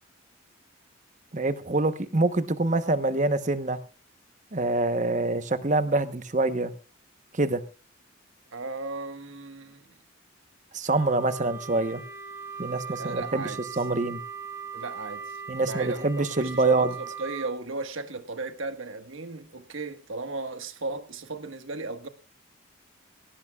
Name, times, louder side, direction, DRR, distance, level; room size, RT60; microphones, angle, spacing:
voice 1, 1.3-3.8 4.5-6.7 7.3-7.6 10.7-12.0 12.6-13.5 13.8-14.2 15.5-16.9, right 2 dB, 35° right, 1.0 m, -25 dB
voice 2, 8.5-10.0 12.9-13.6 14.7-22.1, right 3 dB, 80° right, 1.5 m, -36 dB
Wind instrument woodwind instrument, 10.9-17.6, right 6 dB, 15° right, 3.1 m, -39 dB
19.5 x 17.5 x 2.4 m
head